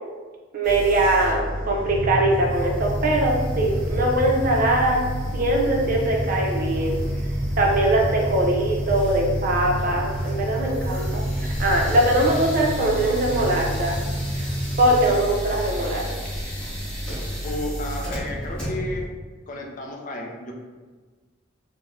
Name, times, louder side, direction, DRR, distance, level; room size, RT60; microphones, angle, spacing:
voice 1, 0.5-5.0 5.3-7.0 7.6-13.9 14.3-14.4 14.8-16.0, right 1 dB, 50° right, -1 dB, 0.5 m, -22 dB
sound 1, 0.6-19.1, equal, 5° left, 0.9 m, -31 dB
sound 2, 1.8-14.8, equal, 25° right, 1.0 m, -30 dB
voice 2, 17.4-19.0 19.5-20.5, left 1 dB, 45° left, 1 dB, 0.4 m, -32 dB
3.3 x 2.1 x 2.4 m, 1.4 s
head